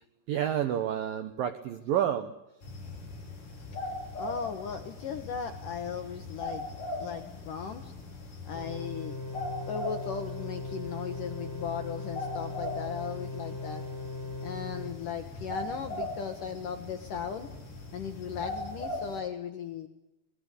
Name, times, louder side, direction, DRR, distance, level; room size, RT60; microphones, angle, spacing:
voice 1, 0.3-2.3, right 10 dB, 75° right, 9 dB, 2.1 m, -29 dB
sound 1, 2.6-19.2, left 2 dB, 45° left, 8.1 m, -40 dB
voice 2, 4.1-6.6 7.0-7.9 8.4-9.1 9.7-13.8 14.4-17.5 17.9-19.9, left 7 dB, 65° left, 6 dB, 2.1 m, -37 dB
sound 2, 8.5-14.9, left 2 dB, 5° left, 1.6 m, -39 dB
26.5 x 21.0 x 8.3 m, 0.89 s
omnidirectional pair, 5.5 m